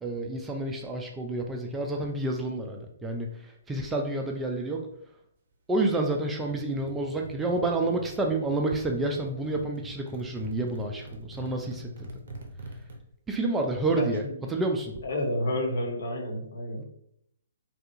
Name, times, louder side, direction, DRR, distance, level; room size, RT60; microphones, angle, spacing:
voice 1, 0.0-4.8 5.7-12.1 13.3-14.2 14.5-14.9 16.8-16.9, right 2 dB, 10° right, 2 dB, 0.3 m, -29 dB
sound 1, 6.4-12.9, right 1 dB, 60° right, 0.5 m, -44 dB
voice 2, 14.0-14.3 15.0-16.8, left 1 dB, 60° left, 1 dB, 0.8 m, -30 dB
2.7 x 2.3 x 2.5 m, 0.72 s
figure-of-eight pair, 130°, 0 cm